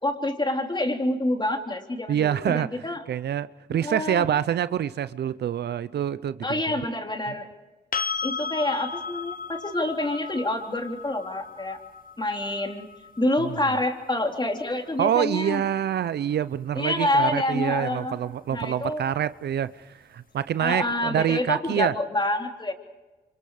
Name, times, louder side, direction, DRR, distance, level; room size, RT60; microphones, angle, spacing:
voice 1, 0.0-3.0 3.8-4.3 6.4-7.5 8.2-11.8 12.2-12.9 13.2-15.6 16.8-18.2 18.5-19.0 20.6-22.7, left 1 dB, 25° left, 3.6 m, -27 dB
voice 2, 2.1-6.8 7.3-7.4 15.0-21.9, right 10 dB, 75° right, 0.6 m, -26 dB
sound 1, 7.9-15.7 18.6-18.7, left 5 dB, 55° left, 1.2 m, -36 dB
27.5 x 26.0 x 5.0 m
supercardioid pair, 50°, 17 cm